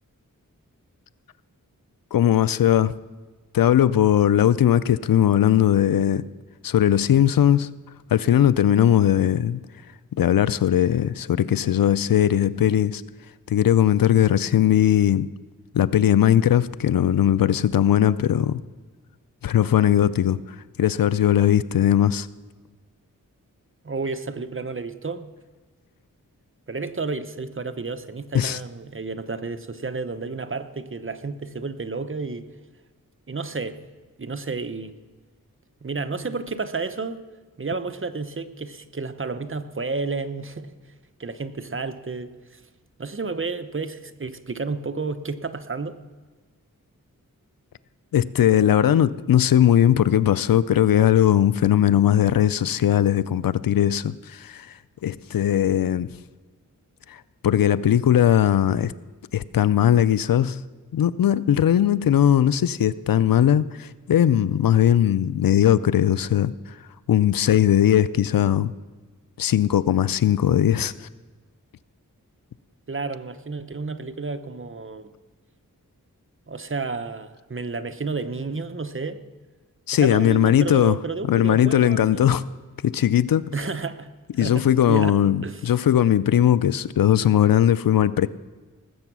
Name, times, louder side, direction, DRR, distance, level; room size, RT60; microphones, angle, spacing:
voice 1, 2.1-2.9 3.5-6.2 6.6-7.7 8.1-9.6 10.2-13.0 13.5-15.3 15.7-18.6 19.4-20.4 20.8-22.3 28.3-28.6 48.1-54.7 55.0-56.1 57.1-57.2 57.4-58.9 59.3-60.6 60.9-66.5 67.1-68.7 69.4-71.1 79.9-81.0 81.3-82.4 82.8-83.5 84.4-88.3, left 10 dB, 80° left, 17 dB, 0.5 m, -19 dB
voice 2, 23.8-25.3 26.7-32.5 33.3-33.8 34.2-35.0 35.8-37.2 37.6-40.7 41.2-42.6 43.0-46.0 72.9-75.1 76.5-79.2 80.0-82.4 83.5-84.1 84.4-85.2 85.4-85.8, right 4 dB, 40° right, 10 dB, 0.9 m, -31 dB
19.0 x 7.9 x 6.1 m, 1.3 s
wide cardioid pair, 50°, 34 cm